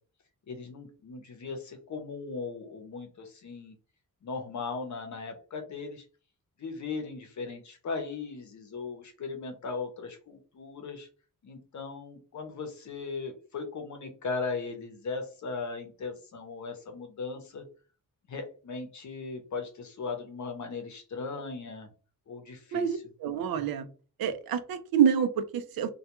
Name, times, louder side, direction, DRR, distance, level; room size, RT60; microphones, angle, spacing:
voice 1, 0.5-3.7 4.2-6.0 6.6-11.1 11.4-17.6 18.3-21.9 22.3-23.0, left 4 dB, 55° left, 5 dB, 0.7 m, -38 dB
voice 2, 22.7-23.9 24.2-25.9, right 8 dB, 85° right, 10 dB, 0.5 m, -27 dB
2.3 x 2.2 x 2.9 m, 0.36 s
wide cardioid pair, 140°, 34 cm